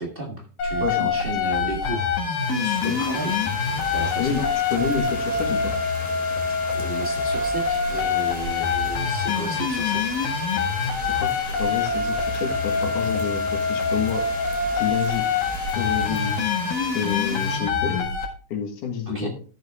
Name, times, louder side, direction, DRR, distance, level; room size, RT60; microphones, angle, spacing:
voice 1, 0.0-2.1 2.5-3.4 3.8-4.5 6.7-10.0 19.1-19.3, right 2 dB, 75° right, -1 dB, 0.5 m, -33 dB
sound 1, 0.6-18.2, left 5 dB, 90° left, 3.7 m, -25 dB
voice 2, 0.8-1.1 2.8-3.0 4.2-4.4 4.7-5.7 11.0-14.2 14.8-15.2 15.8-16.4 16.9-18.1 18.5-19.3, left 7 dB, 65° left, 4 dB, 3.0 m, -28 dB
sound 2, 2.4-17.6, right 1 dB, 5° right, 2.2 m, -39 dB
13.5 x 6.8 x 3.6 m, 0.40 s
omnidirectional pair, 4.0 m